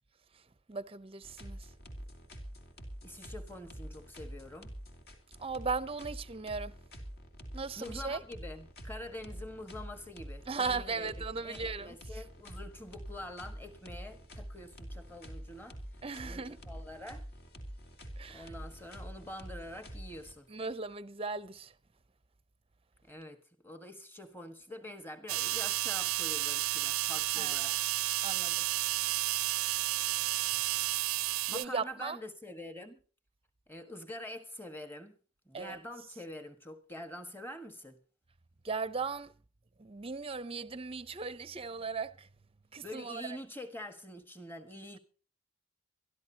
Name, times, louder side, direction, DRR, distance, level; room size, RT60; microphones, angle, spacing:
voice 1, 0.7-1.7 5.4-6.8 7.5-8.2 10.5-12.2 16.0-16.6 18.2-18.5 20.5-21.7 27.3-27.8 28.2-28.6 30.1-30.4 31.3-32.2 35.5-35.8 38.6-39.3 39.8-42.3 42.7-43.4, right 4 dB, 25° right, 0.7 m, -38 dB
sound 1, 1.2-20.7, equal, 50° left, 2.9 m, -46 dB
voice 2, 3.0-4.7 7.8-11.1 11.4-15.8 16.2-17.2 18.3-20.5 23.0-23.4 23.6-27.7 31.5-33.0 33.7-35.2 35.4-38.0 42.8-45.0, left 1 dB, 10° left, 1.5 m, -46 dB
sound 2, 25.3-31.7, right 16 dB, 90° right, 0.6 m, -31 dB
23.5 x 13.0 x 2.9 m
head